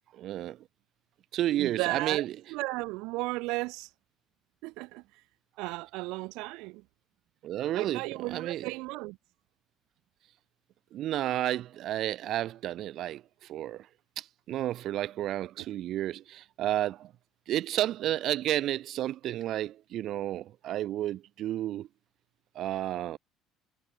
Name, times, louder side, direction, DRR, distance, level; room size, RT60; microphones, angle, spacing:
voice 1, 0.1-0.6 1.3-2.3 7.4-8.7 10.9-13.9 14.2-17.1 17.5-21.9 22.5-23.2, right 13 dB, 50° right, 1.2 m, -31 dB
voice 2, 1.6-3.9 4.6-5.2 5.6-6.8 7.8-9.2 15.6-15.7, right 23 dB, 80° right, 0.9 m, -35 dB
cardioid pair, 155°, 0 cm